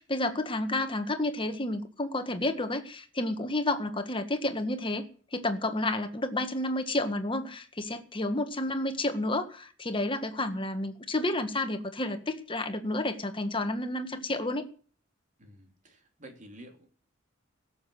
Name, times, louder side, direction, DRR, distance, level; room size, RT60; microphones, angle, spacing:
voice 1, 0.0-5.0 5.3-14.7, left 2 dB, 25° left, 1.7 m, -30 dB
voice 2, 15.4-16.9, right 1 dB, 40° right, 3.2 m, -50 dB
17.0 x 7.4 x 8.0 m
head